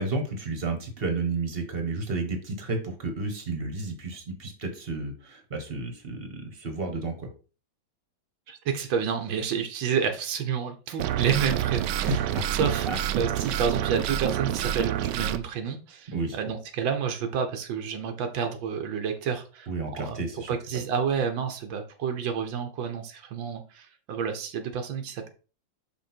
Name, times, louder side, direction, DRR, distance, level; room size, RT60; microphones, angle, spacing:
voice 1, 0.0-7.3 12.3-12.4 12.9-13.0 16.1-16.4 19.7-20.5, right 3 dB, 30° right, 5 dB, 1.6 m, -32 dB
voice 2, 8.5-12.3 12.5-12.9 13.1-19.7 20.0-25.3, right 7 dB, 90° right, 5 dB, 1.7 m, -29 dB
sound 1, 11.0-15.4, right 11 dB, 75° right, 1.1 m, -28 dB
5.7 x 5.4 x 4.4 m, 0.35 s
omnidirectional pair, 2.0 m